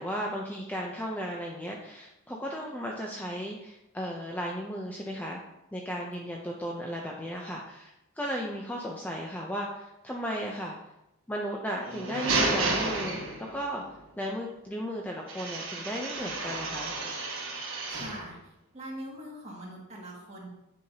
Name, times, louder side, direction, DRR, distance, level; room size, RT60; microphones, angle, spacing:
voice 1, 0.0-5.4 5.7-10.8 11.3-13.2 13.5-13.8 14.2-16.9, equal, 5° left, -1 dB, 0.5 m, -35 dB
sound 1, 11.8-13.7 15.3-18.3, right 3 dB, 60° right, 1.7 m, -31 dB
voice 2, 17.9-18.4 18.7-20.5, right 1 dB, 30° right, -4 dB, 2.0 m, -42 dB
9.5 x 5.6 x 2.8 m, 0.91 s
head